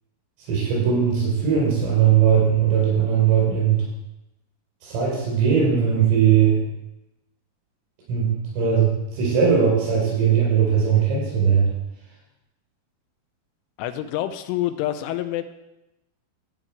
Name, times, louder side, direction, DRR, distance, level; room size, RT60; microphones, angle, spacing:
voice 1, 0.5-3.8 4.8-6.6 8.1-11.7, right 7 dB, 80° right, -6 dB, 7.3 m, -19 dB
voice 2, 13.8-15.4, left 13 dB, 85° left, 10 dB, 3.0 m, -27 dB
13.5 x 4.8 x 8.7 m, 0.93 s
omnidirectional pair, 5.8 m